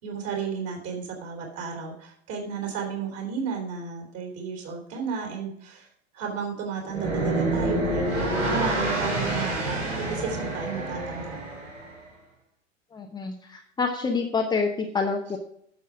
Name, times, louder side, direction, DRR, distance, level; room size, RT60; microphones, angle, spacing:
voice 1, 0.0-5.9 6.1-11.4, right 5 dB, 40° right, 1 dB, 4.0 m, -33 dB
sound 1, 6.9-12.0, right 2 dB, 75° right, 4.8 m, -27 dB
voice 2, 12.9-15.4, left 4 dB, 10° left, 2 dB, 0.8 m, -27 dB
10.5 x 7.1 x 4.9 m, 0.67 s
figure-of-eight pair, 95°, 39 cm